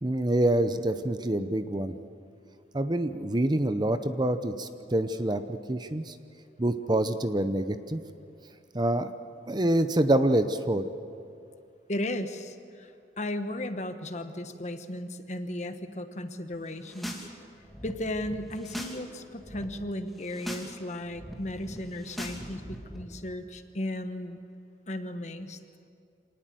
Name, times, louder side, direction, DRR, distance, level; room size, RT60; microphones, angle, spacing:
voice 1, 0.0-2.0 2.7-6.1 6.6-8.0 8.7-9.1 9.5-10.9, right 1 dB, 25° right, 10 dB, 0.8 m, -26 dB
voice 2, 11.9-17.3 17.8-24.4 24.9-25.6, left 1 dB, 40° left, 8 dB, 1.3 m, -35 dB
sound 1, 16.7-17.3 17.5-19.0 19.3-19.6 20.1-20.7 21.0-23.0, equal, ahead, 2.5 m, -41 dB
26.0 x 19.0 x 7.8 m, 2.5 s
head